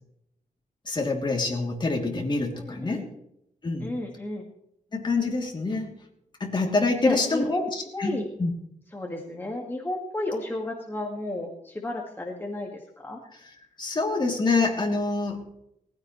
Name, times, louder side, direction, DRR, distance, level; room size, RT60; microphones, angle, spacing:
voice 1, 0.9-3.0 3.6-3.9 4.9-5.9 6.4-8.5 13.8-15.4, left 3 dB, 35° left, 0 dB, 3.1 m, -26 dB
voice 2, 2.5-3.1 3.8-4.5 7.0-7.7 7.9-8.2 8.9-13.2, left 1 dB, 15° left, 0 dB, 2.0 m, -32 dB
19.0 x 16.0 x 3.3 m, 0.77 s
wide cardioid pair, 130°, 14 cm